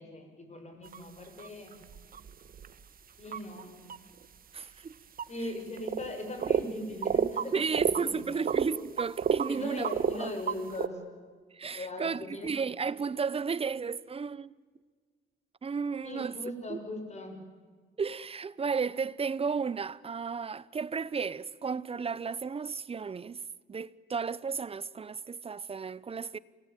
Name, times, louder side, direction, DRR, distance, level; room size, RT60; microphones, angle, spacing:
voice 1, 0.0-1.8 3.2-3.8 5.3-8.5 9.5-11.0 11.7-12.5 16.0-17.4, left 1 dB, 35° left, 5.9 m, -40 dB
sound 1, 0.8-1.0 1.4-2.7 3.3-3.6 3.9-4.0 5.2-5.3 5.8-6.1 6.4-6.6 7.0-8.0 8.5-9.6 9.8-10.9, right 7 dB, 45° right, 1.2 m, -29 dB
voice 2, 4.5-5.0 7.5-9.9 10.2-10.3 11.5-14.5 15.6-16.3 16.7-16.8 18.0-23.4 23.7-26.4, right 5 dB, 30° right, 0.8 m, -33 dB
28.0 x 18.5 x 9.1 m
cardioid pair, 90°, 20 cm